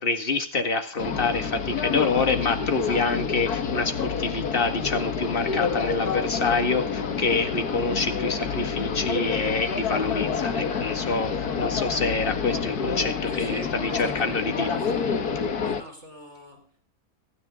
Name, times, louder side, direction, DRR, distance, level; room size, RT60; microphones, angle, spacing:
voice 1, 0.0-14.7, left 3 dB, 35° left, 2.1 m, -27 dB
sound 1, 1.0-15.8, left 6 dB, 85° left, 2.0 m, -28 dB
voice 2, 13.3-15.1 15.6-16.8, right 1 dB, 45° right, 5.4 m, -42 dB
27.0 x 9.8 x 3.7 m
omnidirectional pair, 1.6 m